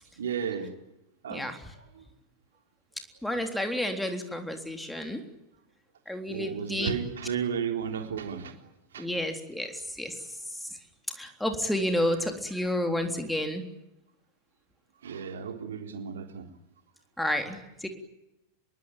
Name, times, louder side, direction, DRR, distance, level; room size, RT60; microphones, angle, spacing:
voice 1, 0.2-0.7 1.2-1.5 1.8-2.1 6.3-8.6 8.9-9.1 15.0-16.5, right 7 dB, 65° right, 5 dB, 3.7 m, -33 dB
voice 2, 3.2-5.2 6.1-6.9 9.0-10.2 10.6-10.7 11.2-13.6 17.2-17.9, left 1 dB, 5° left, 5 dB, 3.6 m, -30 dB
26.0 x 22.5 x 9.2 m, 0.88 s
figure-of-eight pair, 90°, 0 cm